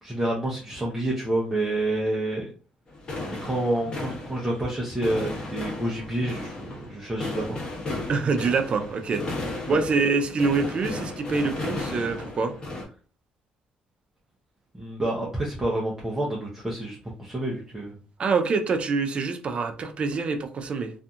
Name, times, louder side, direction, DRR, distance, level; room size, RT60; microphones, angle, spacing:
voice 1, 0.0-2.5 3.4-7.6 9.7-9.8 14.7-18.0, right 1 dB, 10° right, -4 dB, 0.8 m, -28 dB
sound 1, 2.9-12.8, left 2 dB, 35° left, 1.2 m, -35 dB
voice 2, 8.1-9.2 9.5-12.5 18.2-20.9, right 4 dB, 45° right, 6 dB, 0.5 m, -25 dB
2.6 x 2.5 x 2.3 m, 0.38 s
cardioid pair, 100°, 3 cm